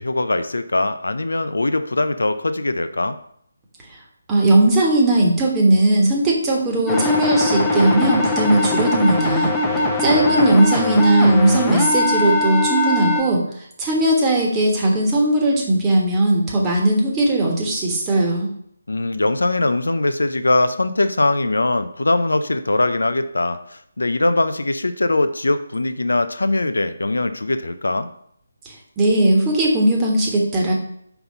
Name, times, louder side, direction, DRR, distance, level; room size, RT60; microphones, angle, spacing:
voice 1, 0.0-3.2 9.7-10.6 18.9-28.1, left 2 dB, 70° left, 11 dB, 0.5 m, -21 dB
voice 2, 4.3-9.5 10.0-13.4 13.8-18.5 29.0-30.7, right 1 dB, 15° right, -2 dB, 1.3 m, -18 dB
sound 1, 6.9-13.2, left 2 dB, 10° left, 0.8 m, -21 dB
5.6 x 4.0 x 5.4 m, 0.69 s
figure-of-eight pair, 150°, 0 cm